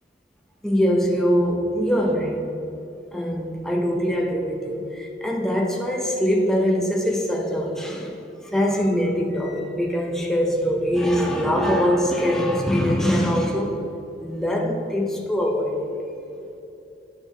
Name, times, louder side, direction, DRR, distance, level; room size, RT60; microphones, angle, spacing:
voice 1, 0.6-2.5 3.1-13.8 14.2-15.9, equal, 5° left, -1 dB, 0.5 m, -23 dB
9.8 x 4.5 x 3.3 m, 3.0 s
head